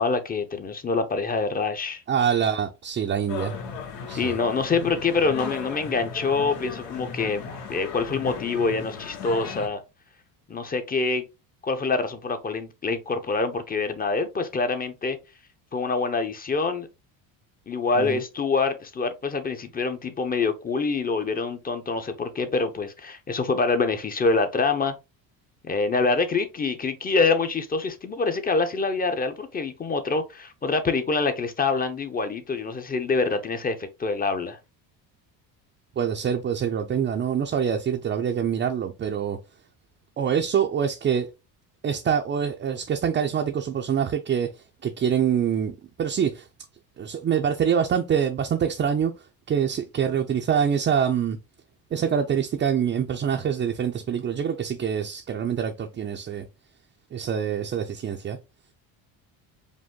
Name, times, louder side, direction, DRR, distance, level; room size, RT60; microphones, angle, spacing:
voice 1, 0.0-2.0 4.1-9.8 10.5-11.2 11.6-15.2 15.7-16.9 17.7-24.9 25.7-34.6, left 4 dB, 20° left, 0.7 m, -25 dB
voice 2, 2.1-3.6 4.1-4.4 18.0-18.2 36.0-39.4 40.2-41.3 41.8-44.5 44.8-45.7 46.0-46.5 47.0-49.1 49.5-51.4 51.9-56.5 57.1-58.4, right 8 dB, 25° right, 0.5 m, -25 dB
sound 1, 3.3-9.7, left 5 dB, 85° left, 1.2 m, -36 dB
5.1 x 2.1 x 3.6 m
cardioid pair, 115°, 43 cm